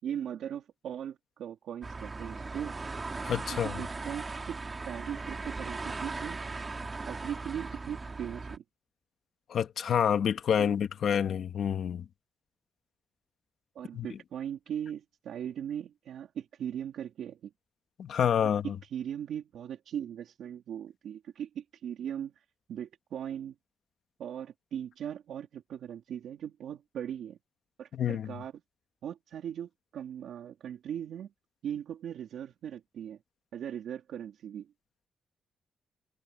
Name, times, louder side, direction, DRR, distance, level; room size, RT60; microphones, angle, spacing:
voice 1, 0.0-2.8 3.5-4.6 4.9-6.4 7.1-8.6 10.6-10.8 13.8-17.5 18.6-23.6 24.2-27.4 27.8-28.5 29.0-31.3 31.6-33.2 33.5-34.7, right 9 dB, 75° right, 3.4 m, -39 dB
sound 1, 1.8-8.6, right 3 dB, 25° right, 2.8 m, -38 dB
voice 2, 3.2-3.8 9.5-12.1 13.9-14.1 18.0-18.8 27.9-28.3, left 8 dB, 60° left, 1.8 m, -28 dB
wide cardioid pair, 165°, 0 cm